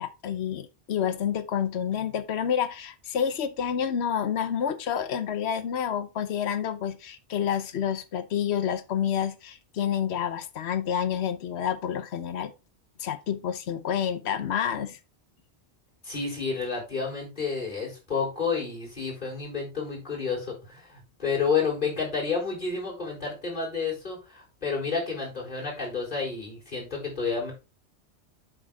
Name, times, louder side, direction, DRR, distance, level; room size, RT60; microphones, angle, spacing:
voice 1, 0.0-12.5 13.0-15.0, left 8 dB, 65° left, 1.1 m, -29 dB
voice 2, 16.0-27.5, left 5 dB, 45° left, 4.3 m, -30 dB
7.9 x 6.2 x 3.8 m
omnidirectional pair, 1.2 m